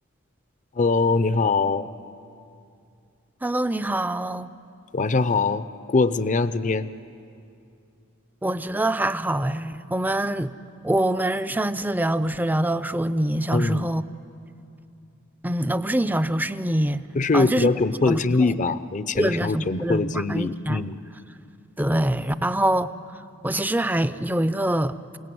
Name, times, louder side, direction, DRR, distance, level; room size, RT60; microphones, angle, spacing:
voice 1, 0.8-1.9 4.9-6.9 13.5-13.9 17.1-21.0, left 3 dB, 35° left, 0.6 m, -22 dB
voice 2, 3.4-4.5 8.4-10.5 10.8-14.0 15.4-17.0 17.3-17.7 18.1-18.2 19.1-20.8 21.8-22.9 23.4-25.0, right 1 dB, 10° right, 0.5 m, -24 dB
28.5 x 17.5 x 9.4 m
head